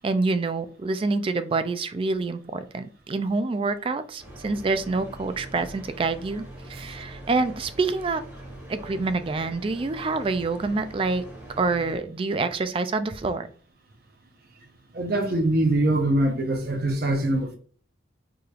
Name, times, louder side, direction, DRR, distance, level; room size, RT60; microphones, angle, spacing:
voice 1, 0.0-6.4 6.7-8.2 8.7-11.2 11.6-13.5, right 3 dB, 30° right, 0.3 m, -27 dB
sound 1, 4.2-12.0, right 1 dB, 10° right, 1.3 m, -43 dB
voice 2, 14.9-17.6, right 1 dB, 50° right, 0.7 m, -23 dB
4.8 x 3.1 x 2.4 m
head